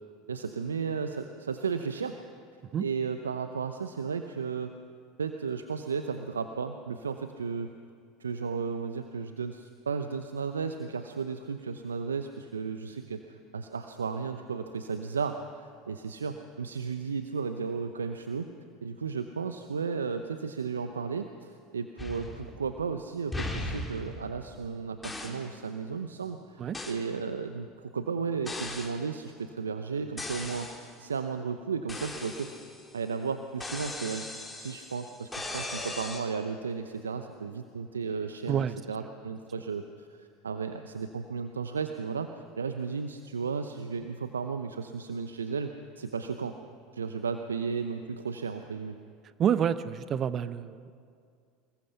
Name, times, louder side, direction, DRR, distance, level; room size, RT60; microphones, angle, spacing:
voice 1, 0.3-2.2 2.8-4.7 5.2-7.7 8.2-18.5 18.8-26.6 26.9-32.5 32.9-46.6 46.9-49.0, right 5 dB, 85° right, 8 dB, 0.8 m, -34 dB
sound 1, 22.0-22.9 23.3-24.6 25.0-25.5 26.7-27.0 28.4-29.0 30.2-30.9 31.9-33.0 33.6-36.2, left 2 dB, 10° left, 4.1 m, -38 dB
voice 2, 49.4-50.9, right 8 dB, 40° right, 14 dB, 0.8 m, -28 dB
26.0 x 21.0 x 5.8 m, 2.3 s
hypercardioid pair, 80°, 0 cm